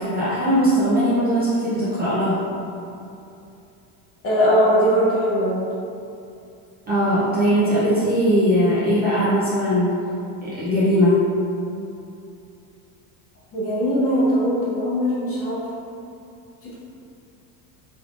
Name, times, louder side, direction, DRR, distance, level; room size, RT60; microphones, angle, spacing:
voice 1, 0.0-2.4 6.9-10.0 10.4-11.2, equal, 20° right, -10 dB, 0.5 m, -19 dB
voice 2, 4.2-5.7 13.5-15.6 16.6-16.7, equal, 30° left, -8 dB, 1.0 m, -20 dB
3.5 x 3.2 x 2.5 m, 2.6 s
cardioid pair, 140°, 46 cm